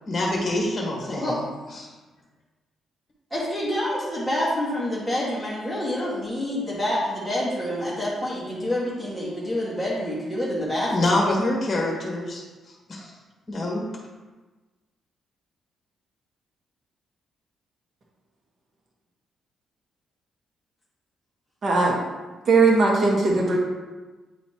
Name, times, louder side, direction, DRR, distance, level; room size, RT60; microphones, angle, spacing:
voice 1, 0.1-1.4 1.7-1.9 10.9-13.1 13.5-13.8, left 1 dB, 35° left, -2 dB, 1.4 m, -26 dB
voice 2, 1.0-1.4 3.3-11.1, left 1 dB, 5° right, -8 dB, 1.8 m, -27 dB
voice 3, 21.6-22.0 22.4-23.6, right 3 dB, 45° right, -3 dB, 1.4 m, -19 dB
8.9 x 4.1 x 3.0 m, 1.2 s
cardioid pair, 110°, 0 cm